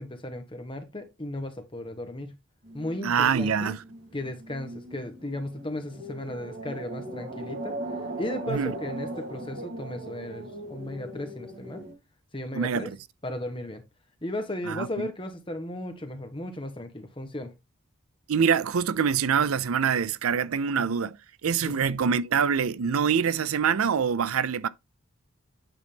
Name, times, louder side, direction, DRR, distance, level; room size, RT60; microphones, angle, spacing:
voice 1, 0.0-2.4 2.7-3.8 4.1-7.8 8.2-11.8 12.3-12.9 13.2-13.8 14.2-17.5 21.6-21.8, left 1 dB, 25° left, 1.3 m, -35 dB
sound 1, 2.6-11.9, right 1 dB, 50° right, 2.9 m, -39 dB
voice 2, 3.0-3.8 8.5-8.7 12.5-13.0 14.7-15.1 18.3-21.2 21.4-24.7, right 6 dB, 85° right, 0.5 m, -25 dB
9.1 x 4.0 x 3.5 m
head